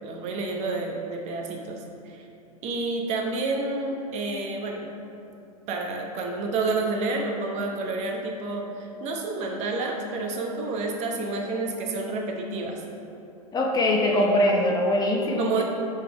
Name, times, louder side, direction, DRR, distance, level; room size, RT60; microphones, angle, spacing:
voice 1, 0.0-2.2 2.6-4.9 5.7-12.8 14.1-14.4 15.4-15.6, right 3 dB, 35° right, 1 dB, 0.9 m, -29 dB
voice 2, 13.5-15.6, left 1 dB, 20° left, 0 dB, 0.7 m, -22 dB
5.5 x 5.1 x 4.9 m, 2.8 s
figure-of-eight pair, 100°, 20 cm